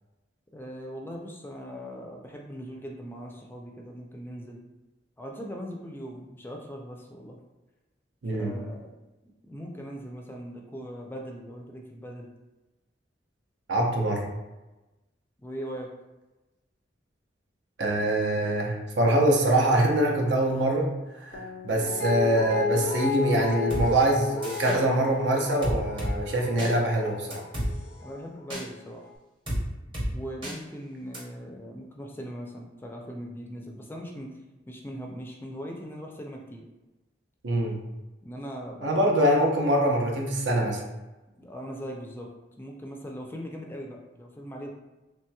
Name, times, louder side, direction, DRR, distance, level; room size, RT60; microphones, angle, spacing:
voice 1, 0.5-4.6 5.2-7.4 8.3-8.9 9.4-12.3 15.4-15.9 28.0-29.1 30.1-34.3 34.7-36.6 38.2-39.2 41.4-42.3 42.6-44.7, equal, 10° left, 1 dB, 0.3 m, -40 dB
voice 2, 8.2-8.6 13.7-14.3 17.8-20.9 21.2-27.4 37.4-37.8 38.8-40.8, right 1 dB, 80° right, 1 dB, 0.6 m, -24 dB
Guitar, 21.3-28.3 28.7-28.8, left 5 dB, 90° left, 0.5 m, -32 dB
sound 1, 23.7-23.9 24.4-24.8 25.6-26.1 26.6-26.7 27.3-27.7 28.5-28.6 29.5-29.6 29.9-30.1 30.4-30.6 31.1-31.2, equal, 30° right, 0.8 m, -30 dB
3.1 x 2.8 x 2.2 m, 1.1 s
head